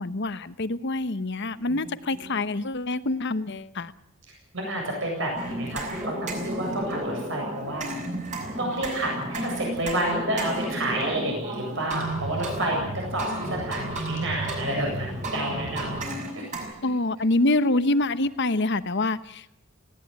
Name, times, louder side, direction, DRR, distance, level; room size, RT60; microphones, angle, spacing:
voice 1, 0.0-3.9 16.8-19.5, left 2 dB, 60° left, 13 dB, 1.0 m, -26 dB
voice 2, 2.2-2.6 4.5-7.9 8.6-16.7, right 1 dB, 65° right, 0 dB, 7.8 m, -30 dB
sound 1, 5.4-16.6, right 1 dB, 40° right, 6.1 m, -32 dB
19.5 x 17.0 x 9.5 m, 0.73 s
head